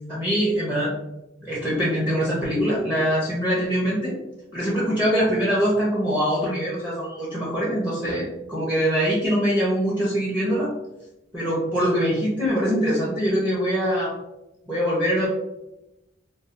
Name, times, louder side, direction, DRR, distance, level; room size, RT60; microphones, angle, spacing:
voice 1, 0.1-0.9 1.4-4.1 4.5-10.7 11.3-14.1 14.7-15.3, equal, 10° right, -6 dB, 0.6 m, -23 dB
3.2 x 2.3 x 2.5 m, 0.93 s
head